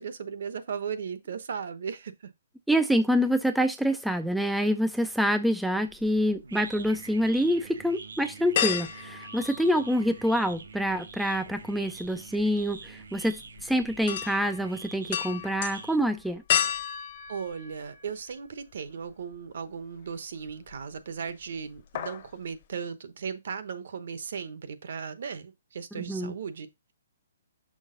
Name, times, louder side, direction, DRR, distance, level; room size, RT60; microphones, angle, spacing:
voice 1, 0.0-2.3 17.3-26.9, right 6 dB, 55° right, 1.0 m, -37 dB
voice 2, 2.7-16.4 25.9-26.3, equal, ahead, 0.3 m, -26 dB
sound 1, 5.9-6.9 7.4-7.5 8.6-10.3 10.5-18.5 18.9-19.0 20.4-21.0 21.3-21.5 21.7-22.3 22.6-22.7, left 9 dB, 35° left, 0.8 m, -33 dB
sound 2, 6.0-16.4, right 4 dB, 85° right, 1.2 m, -45 dB
6.3 x 4.6 x 3.8 m
hypercardioid pair, 170°, 0 cm